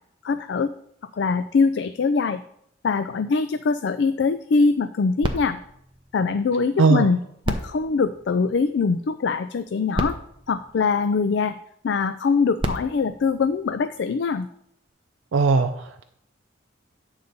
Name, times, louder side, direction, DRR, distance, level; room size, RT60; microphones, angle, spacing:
voice 1, 0.2-0.7 1.1-2.4 2.8-5.6 6.1-7.2 7.5-10.2 10.5-11.6 11.8-14.5, left 4 dB, 60° left, 11 dB, 0.3 m, -23 dB
sound 1, 5.2-6.9 7.4-9.0 9.7-9.8 9.9-11.5 12.3-14.2 14.9-15.0, right 1 dB, 25° right, 0.8 m, -33 dB
voice 2, 6.8-7.1 15.3-16.0, right 4 dB, 85° right, 6 dB, 0.5 m, -19 dB
9.4 x 4.0 x 6.6 m, 0.72 s
head